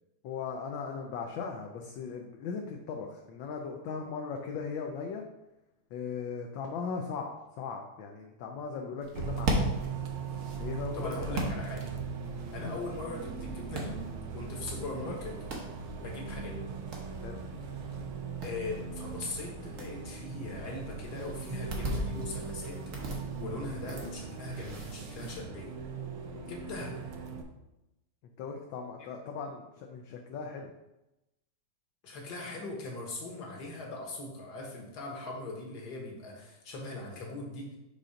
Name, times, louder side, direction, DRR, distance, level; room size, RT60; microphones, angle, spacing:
voice 1, 0.2-5.2 5.9-9.7 10.6-11.4 12.6-12.8 17.2-17.4 26.3-26.5 28.4-30.7, left 5 dB, 70° left, 2 dB, 1.3 m, -38 dB
sound 1, 9.0-25.4, right 1 dB, 45° right, 1.1 m, -40 dB
Bus, 9.2-27.4, right 5 dB, 80° right, 1.6 m, -39 dB
voice 2, 10.9-11.9 12.5-14.0 14.3-15.4 16.0-16.6 18.4-22.8 23.4-25.7 26.5-27.0 32.0-37.7, left 2 dB, 55° left, -1 dB, 1.7 m, -40 dB
5.7 x 3.8 x 5.0 m, 0.94 s
omnidirectional pair, 2.3 m